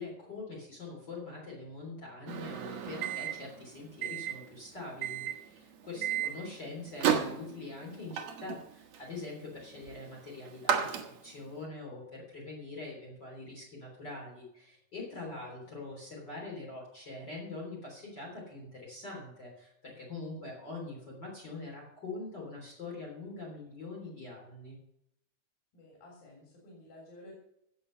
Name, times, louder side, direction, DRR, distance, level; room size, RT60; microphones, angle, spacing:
voice 1, 0.0-24.8, left 3 dB, 30° left, -2 dB, 3.9 m, -44 dB
Microwave oven, 2.3-11.5, right 8 dB, 60° right, 2.1 m, -35 dB
voice 2, 5.9-6.2 15.3-15.8 25.7-27.3, left 1 dB, 80° left, -2 dB, 5.2 m, -53 dB
16.0 x 6.9 x 6.7 m, 0.79 s
omnidirectional pair, 4.1 m